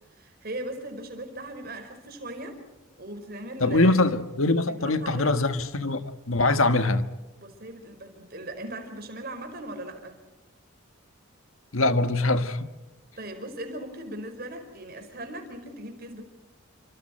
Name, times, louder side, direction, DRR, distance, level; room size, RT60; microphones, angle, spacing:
voice 1, 0.1-2.6 3.0-4.0 4.8-5.6 6.7-6.8 7.4-10.2 13.2-16.2, right 1 dB, 45° right, 5.2 m, -38 dB
voice 2, 3.6-7.0 11.7-12.7, left 2 dB, 75° left, 1.6 m, -23 dB
29.0 x 26.0 x 4.5 m
head